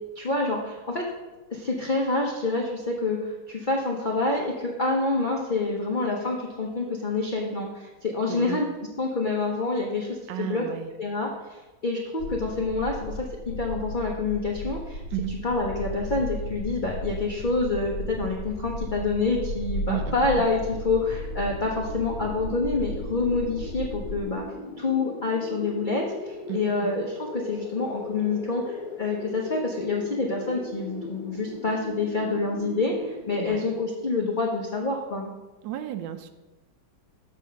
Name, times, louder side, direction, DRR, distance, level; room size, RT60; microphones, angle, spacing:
voice 1, 0.1-1.0 1.5-8.7 9.0-10.6 11.0-15.0 15.4-24.4 24.8-35.3, left 3 dB, 60° left, -1 dB, 0.5 m, -27 dB
voice 2, 8.3-8.7 10.3-10.9 15.1-15.3 19.9-20.2 26.5-26.6 33.4-33.7 35.6-36.3, right 12 dB, 80° right, 9 dB, 1.2 m, -32 dB
sound 1, 12.2-24.2, left 1 dB, 85° left, 1.4 m, -35 dB
sound 2, 20.4-33.5, left 2 dB, 30° left, 1.2 m, -39 dB
7.4 x 3.6 x 5.7 m, 1.1 s
omnidirectional pair, 2.0 m